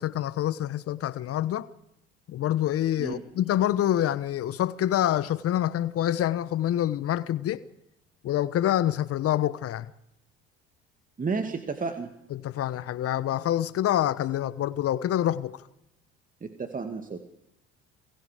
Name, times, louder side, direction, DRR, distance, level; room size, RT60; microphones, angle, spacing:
voice 1, 0.0-1.7 2.3-7.6 8.2-9.9 12.3-15.6, left 12 dB, 50° left, 1.1 m, -26 dB
voice 2, 11.2-12.1 16.4-17.2, right 4 dB, 25° right, 2.2 m, -32 dB
29.0 x 22.0 x 5.1 m
hypercardioid pair, 65°, 30 cm